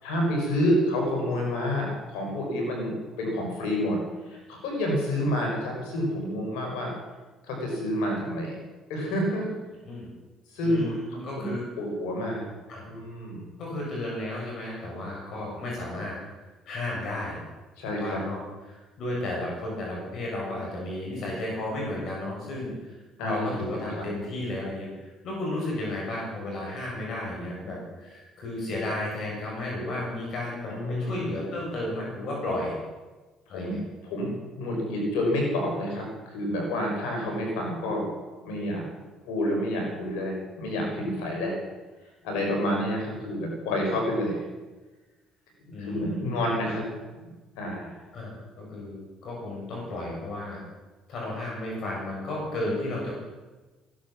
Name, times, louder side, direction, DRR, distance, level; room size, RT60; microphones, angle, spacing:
voice 1, 0.0-4.0 4.3-7.0 7.4-8.6 8.9-9.5 10.5-11.5 11.8-12.4 12.9-13.4 17.8-18.2 23.2-24.1 30.7-31.3 33.5-33.8 34.0-34.3 34.5-38.1 38.4-38.9 39.2-41.6 42.2-44.4 45.8-46.8 47.2-47.9, left 1 dB, 85° left, 0 dB, 5.5 m, -29 dB
voice 2, 10.6-11.7 12.7-12.8 13.6-16.2 16.7-17.4 17.9-18.4 18.7-23.0 23.2-32.8 33.5-33.8 45.7-46.8 48.1-50.6 51.1-53.1, left 1 dB, 60° left, -3 dB, 7.2 m, -33 dB
16.0 x 11.5 x 7.4 m, 1.2 s
supercardioid pair, 75°, 0 cm